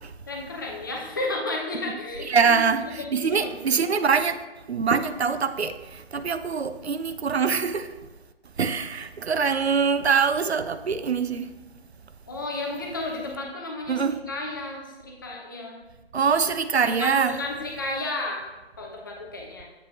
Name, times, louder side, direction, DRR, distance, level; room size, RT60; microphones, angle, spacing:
voice 1, 0.3-2.5 2.9-3.9 12.3-15.8 17.0-18.4 18.8-19.7, left 2 dB, 20° left, 0.6 m, -33 dB
voice 2, 2.2-4.4 4.7-7.9 8.6-11.5 13.9-14.2 16.1-17.4, right 6 dB, 80° right, 0.6 m, -24 dB
7.6 x 5.0 x 2.8 m
figure-of-eight pair, 150°, 32 cm